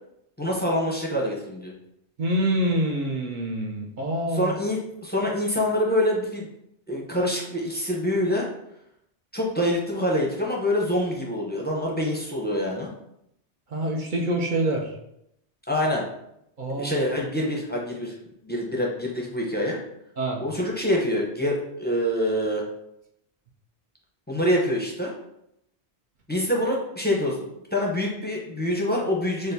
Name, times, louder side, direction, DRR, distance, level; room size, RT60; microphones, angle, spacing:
voice 1, 0.4-1.7 4.3-6.5 6.9-8.5 9.3-12.9 15.7-16.0 16.8-18.1 18.4-19.8 20.4-22.6 24.3-25.1 26.3-27.4 27.7-29.5, left 1 dB, 15° left, -2 dB, 0.5 m, -25 dB
voice 2, 2.2-4.5 13.7-14.9 16.6-17.0 20.2-20.4, right 1 dB, 55° right, 0 dB, 0.6 m, -26 dB
6.3 x 2.1 x 2.6 m, 0.79 s
omnidirectional pair, 1.1 m